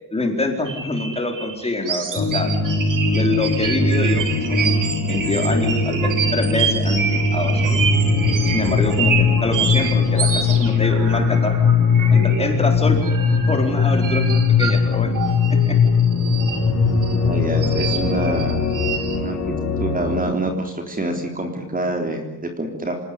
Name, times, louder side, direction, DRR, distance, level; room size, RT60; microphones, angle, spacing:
voice 1, 0.1-2.5 3.1-7.8 8.5-11.6 12.1-13.0 13.5-15.2 15.6-15.8, left 2 dB, 15° left, 3 dB, 4.4 m, -25 dB
sound 1, 0.7-12.7 13.0-17.2 17.6-19.2, right 6 dB, 55° right, 3.9 m, -28 dB
sound 2, 2.2-20.2, left 4 dB, 45° left, 6.4 m, -20 dB
voice 2, 17.2-18.6 19.1-19.5 19.8-23.0, right 2 dB, 20° right, 4 dB, 3.6 m, -26 dB
27.5 x 18.5 x 9.9 m, 0.91 s
wide cardioid pair, 165°, 37 cm